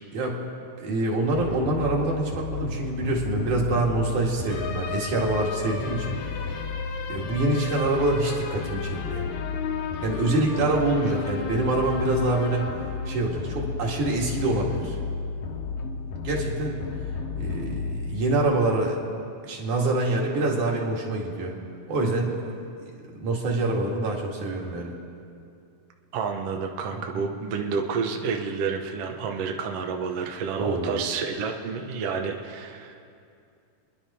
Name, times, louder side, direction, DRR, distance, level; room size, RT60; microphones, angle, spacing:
voice 1, 0.8-6.5 7.1-9.3 10.0-12.6 13.1-15.0 16.2-16.8 17.4-19.0 19.4-21.5 21.9-22.4 22.8-22.9 23.2-24.9 27.1-27.3 30.6-31.0, right 2 dB, 60° right, -1 dB, 3.3 m, -26 dB
sound 1, 1.3-18.9, left 5 dB, 65° left, 2.0 m, -32 dB
voice 2, 26.1-32.9, right 5 dB, 75° right, 2 dB, 1.4 m, -29 dB
30.0 x 11.0 x 4.3 m, 2.4 s
omnidirectional pair, 4.2 m